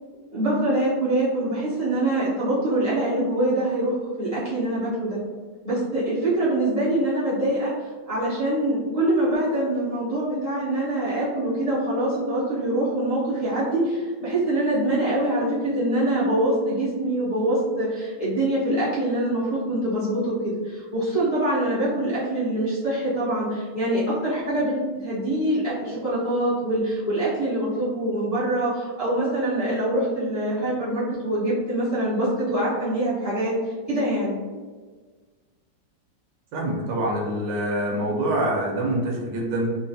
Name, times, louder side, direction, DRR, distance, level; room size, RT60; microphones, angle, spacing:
voice 1, 0.3-5.2 5.6-7.7 8.0-34.4, right 1 dB, 30° left, -11 dB, 0.7 m, -24 dB
voice 2, 36.5-39.8, right 1 dB, 75° right, -1 dB, 1.3 m, -25 dB
3.8 x 2.1 x 2.7 m, 1.4 s
omnidirectional pair, 2.1 m